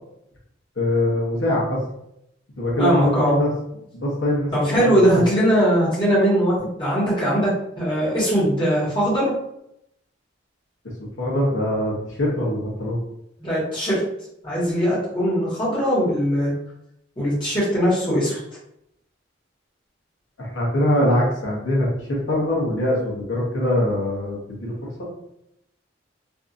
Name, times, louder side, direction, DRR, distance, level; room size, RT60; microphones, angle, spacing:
voice 1, 0.8-1.8 2.6-3.5 3.9-5.0 11.2-13.0 20.4-24.7, left 1 dB, 85° left, -4 dB, 0.9 m, -23 dB
voice 2, 2.8-3.4 4.5-7.5 7.8-9.3 13.4-14.0 14.4-16.5 17.2-18.4, equal, 25° left, -9 dB, 1.3 m, -20 dB
2.7 x 2.6 x 2.4 m, 0.80 s
head